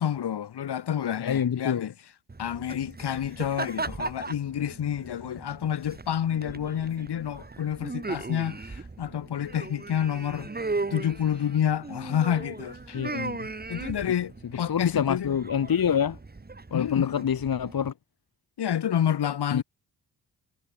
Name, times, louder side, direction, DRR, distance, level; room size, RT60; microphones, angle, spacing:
voice 1, 0.0-1.9 2.4-10.5 10.9-13.0 13.7-15.4 16.7-17.3 18.6-19.6, left 9 dB, 80° left, 6.9 m, -29 dB
voice 2, 1.2-1.9 12.9-13.5 14.7-16.2 16.7-17.9 19.5-19.6, left 8 dB, 60° left, 3.1 m, -26 dB
sound 1, 2.3-17.9, right 3 dB, 25° right, 4.1 m, -38 dB
cardioid pair, 100°, 40 cm